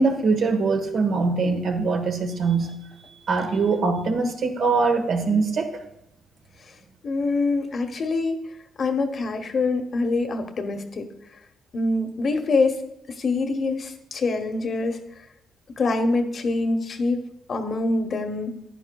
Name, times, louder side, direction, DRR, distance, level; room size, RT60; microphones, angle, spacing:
voice 1, 0.0-2.8 3.3-5.8, right 4 dB, 60° right, 5 dB, 1.3 m, -22 dB
voice 2, 7.0-8.4 8.8-11.1 11.7-12.8 13.1-15.0 15.8-17.2 17.5-18.6, left 3 dB, 50° left, 6 dB, 1.0 m, -25 dB
10.5 x 9.9 x 2.3 m, 0.81 s
cardioid pair, 90°, 0 cm